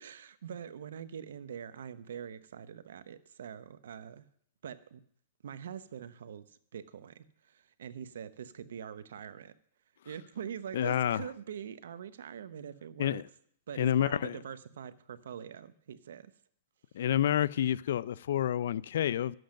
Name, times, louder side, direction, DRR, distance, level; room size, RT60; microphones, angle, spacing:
voice 1, 0.0-4.3 4.6-5.0 5.4-9.5 10.0-13.2 13.7-16.3, right 8 dB, 85° right, 0.8 m, -44 dB
voice 2, 10.7-11.2 13.0-13.2 13.8-14.4 16.9-19.4, left 10 dB, 75° left, 0.4 m, -29 dB
11.5 x 7.8 x 6.4 m
hypercardioid pair, 150°, 0 cm